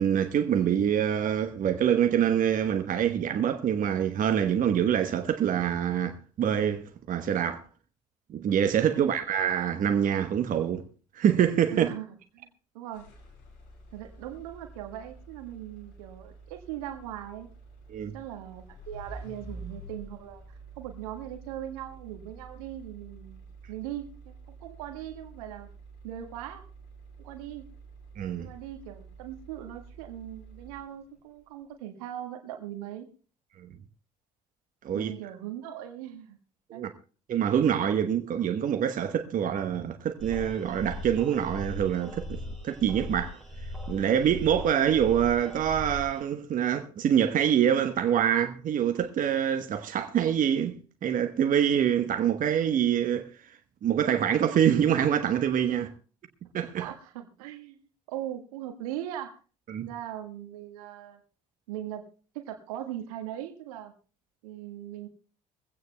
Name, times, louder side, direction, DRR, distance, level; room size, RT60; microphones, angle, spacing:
voice 1, 0.0-7.6 8.3-10.8 11.1-11.9 17.9-18.2 28.2-28.5 33.6-33.7 34.8-35.1 36.7-36.9 37.3-42.4 42.6-43.4 43.9-53.3 53.8-55.9 56.5-56.9 59.7-59.9, right 9 dB, 45° right, 1.1 m, -25 dB
voice 2, 11.7-12.1 12.3-12.5 12.7-13.1 13.9-17.5 18.1-23.4 23.7-25.7 26.0-26.6 27.2-27.7 28.4-33.1 34.9-36.4 36.7-36.9 55.7-55.9 56.8-57.8 58.1-59.3 59.9-61.2 61.7-62.1 62.3-63.9 64.4-65.1, right 11 dB, 75° right, 1.6 m, -39 dB
sound 1, 12.9-31.2, right 3 dB, 65° left, 4.2 m, -48 dB
sound 2, 40.2-46.2, left 1 dB, ahead, 6.2 m, -39 dB
21.5 x 16.0 x 2.2 m
hypercardioid pair, 55°, 19 cm